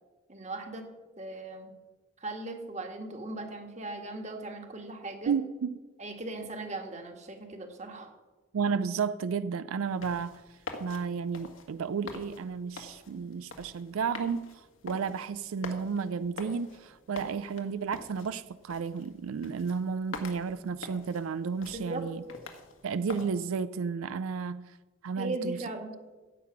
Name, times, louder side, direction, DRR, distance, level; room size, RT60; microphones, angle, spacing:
voice 1, 0.3-0.8 1.2-1.7 2.2-5.3 6.0-8.1 21.7-22.0 25.2-26.0, right 2 dB, 35° right, 4 dB, 1.7 m, -38 dB
voice 2, 5.3-5.8 8.5-10.4 10.8-22.2 22.8-24.8 25.0-25.6, right 6 dB, 90° right, 15 dB, 0.4 m, -32 dB
sound 1, 9.9-23.3, left 3 dB, 75° left, 1.7 m, -46 dB
15.0 x 8.6 x 5.9 m, 1.2 s
head